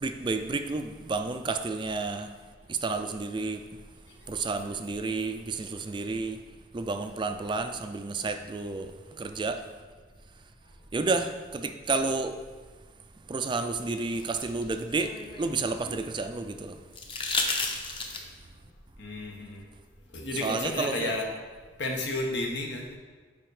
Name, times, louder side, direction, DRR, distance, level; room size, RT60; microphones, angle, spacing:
voice 1, 0.0-2.3 2.7-3.6 4.3-6.4 6.7-8.9 9.2-9.6 10.9-12.4 13.3-16.8 20.4-21.1, right 3 dB, 25° right, 7 dB, 0.4 m, -31 dB
sound 1, 13.8-16.0 16.9-18.5 20.1-20.2, left 3 dB, 30° left, 0.8 m, -33 dB
voice 2, 19.0-19.6 20.1-21.3 21.8-23.0, left 2 dB, 75° left, 0 dB, 1.4 m, -32 dB
7.7 x 5.1 x 4.9 m, 1.5 s
head